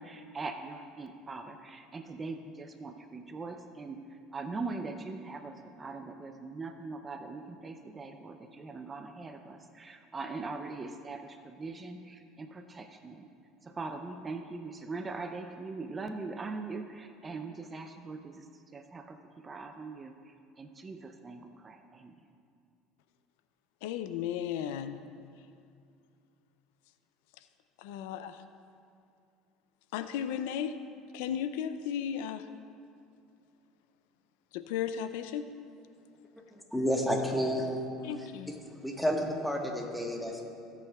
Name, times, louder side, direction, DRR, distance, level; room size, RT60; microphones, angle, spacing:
voice 1, 0.0-4.0 4.3-13.3 13.6-18.4 18.7-22.1, right 3 dB, 25° right, 6 dB, 0.5 m, -41 dB
voice 2, 23.8-25.0 27.8-28.4 29.9-30.8 31.1-32.4 34.5-35.5 38.0-38.5, left 9 dB, 85° left, 11 dB, 0.4 m, -35 dB
voice 3, 36.7-37.9 38.2-38.5 38.8-40.4, equal, ahead, 0 dB, 1.3 m, -31 dB
17.0 x 8.3 x 2.3 m, 2.4 s
supercardioid pair, 115°, 0 cm